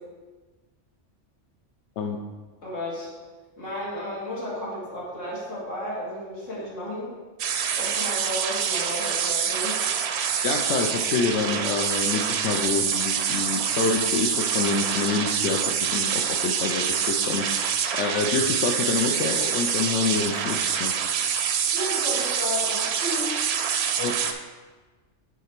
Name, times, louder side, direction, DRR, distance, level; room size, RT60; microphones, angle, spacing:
voice 1, 2.6-3.1 3.6-7.1 7.8-9.8 21.7-23.4, left 1 dB, 90° left, -6 dB, 2.4 m, -33 dB
sound 1, 7.4-24.3, right 7 dB, 65° right, 0.8 m, -26 dB
voice 2, 10.4-17.5 17.9-20.9 24.0-24.1, left 4 dB, 75° left, 3 dB, 0.8 m, -27 dB
6.5 x 4.9 x 4.4 m, 1.4 s
omnidirectional pair, 1.3 m